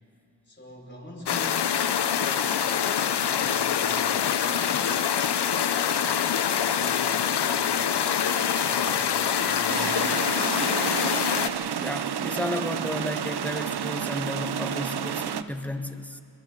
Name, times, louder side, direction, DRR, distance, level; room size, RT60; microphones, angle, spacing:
voice 1, 0.5-5.0 5.6-10.1 12.5-12.9, left 1 dB, 25° left, 0 dB, 5.4 m, -44 dB
sound 1, 1.3-11.5, left 8 dB, 90° left, 0.8 m, -25 dB
sound 2, 6.2-6.6 7.0-7.7 8.1-10.0 10.9-11.0 12.2-12.7, left 1 dB, 70° left, 5.0 m, -40 dB
sound 3, 9.7-15.4, right 8 dB, 75° right, 0.7 m, -30 dB
voice 2, 11.8-16.2, left 1 dB, 5° left, 6 dB, 1.4 m, -33 dB
29.5 x 22.5 x 4.0 m, 2.6 s
cardioid pair, 55°, 39 cm